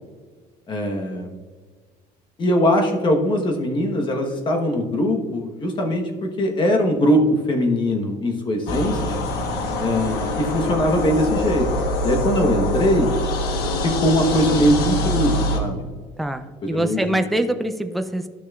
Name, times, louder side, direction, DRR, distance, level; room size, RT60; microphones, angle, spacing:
voice 1, 0.7-1.3 2.4-9.2 9.8-11.7 12.0-13.1 13.8-15.9 16.6-17.2, equal, 30° left, 3 dB, 1.1 m, -21 dB
sound 1, 8.7-15.6, left 1 dB, 75° left, 1.1 m, -24 dB
voice 2, 16.2-18.3, right 1 dB, ahead, 7 dB, 0.3 m, -24 dB
12.5 x 6.0 x 2.4 m, 1.5 s
cardioid pair, 140°, 16 cm